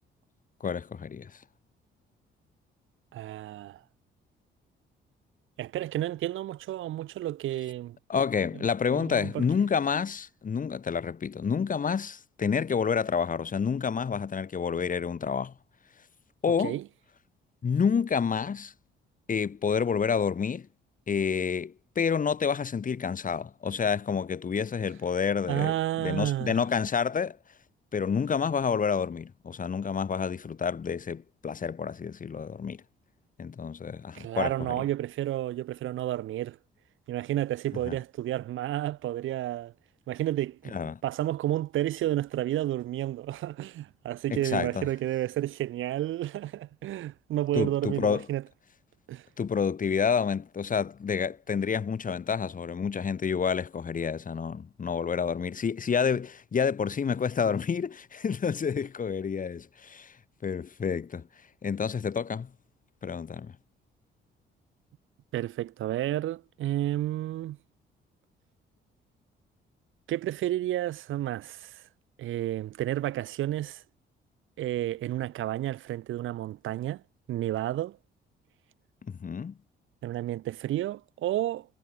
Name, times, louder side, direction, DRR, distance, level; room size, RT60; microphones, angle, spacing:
voice 1, 0.6-1.3 8.1-15.5 16.4-16.8 17.6-18.7 19.3-20.7 21.1-27.4 27.9-32.8 33.4-34.8 37.9-38.0 40.7-41.0 44.3-44.9 47.5-48.2 49.4-60.1 60.4-61.2 61.6-62.5 63.0-63.5 79.1-79.5, left 6 dB, 40° left, 3.2 m, -29 dB
voice 2, 3.1-3.8 5.6-8.0 8.5-8.7 8.9-9.5 16.6-16.9 25.5-26.6 34.1-36.6 37.1-39.7 40.1-40.8 41.0-48.4 49.1-49.3 65.3-67.6 70.1-71.8 72.2-73.8 74.6-77.0 77.3-78.0 80.0-81.7, right 13 dB, 85° right, 7.9 m, -31 dB
cardioid pair, 90°, 20 cm